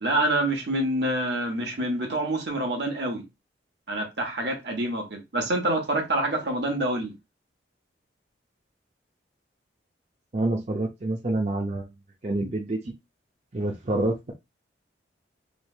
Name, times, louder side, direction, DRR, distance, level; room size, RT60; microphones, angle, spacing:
voice 1, 0.0-3.2 3.9-7.1, right 1 dB, 65° right, 1.1 m, -26 dB
voice 2, 10.3-11.9 12.2-12.9 13.5-14.3, right 2 dB, 35° right, 0.5 m, -27 dB
3.2 x 3.1 x 2.3 m
head